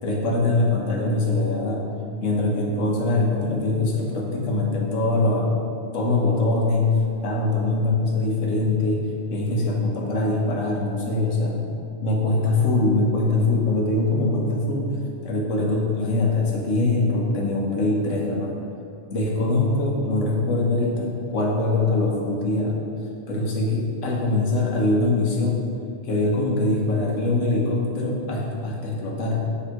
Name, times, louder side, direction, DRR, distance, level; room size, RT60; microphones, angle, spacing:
voice 1, 0.0-1.8 2.2-5.6 5.9-6.9 7.2-9.0 9.3-11.6 12.0-14.9 15.2-18.5 19.1-22.8 23.3-25.6 26.0-29.5, left 2 dB, 75° left, -2 dB, 1.3 m, -23 dB
7.0 x 3.1 x 4.5 m, 2.5 s
omnidirectional pair, 1.3 m